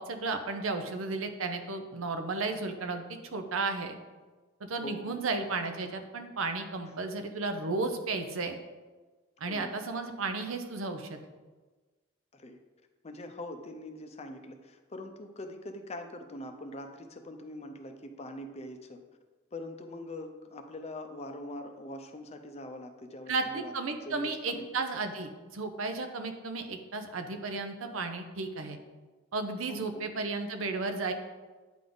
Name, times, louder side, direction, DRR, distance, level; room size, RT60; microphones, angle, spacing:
voice 1, 0.0-4.0 4.6-8.6 9.4-11.2 23.3-28.8 29.3-31.1, right 3 dB, 85° right, 6 dB, 0.7 m, -34 dB
voice 2, 4.8-5.2 9.4-9.7 12.3-12.6 13.0-19.0 19.5-23.7 24.1-24.6 29.7-30.0, left 1 dB, 30° left, 6 dB, 0.5 m, -43 dB
9.3 x 3.6 x 3.9 m, 1.3 s
head